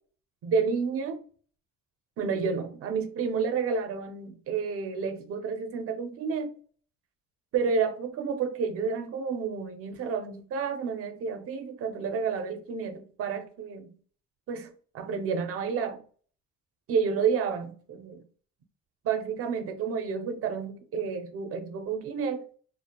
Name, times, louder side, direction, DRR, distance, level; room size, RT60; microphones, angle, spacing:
voice 1, 0.4-1.2 2.2-6.5 7.5-13.9 14.5-16.0 16.9-18.2 19.0-22.4, right 5 dB, 45° right, 0.4 m, -30 dB
2.3 x 2.0 x 2.8 m
cardioid pair, 150°, 33 cm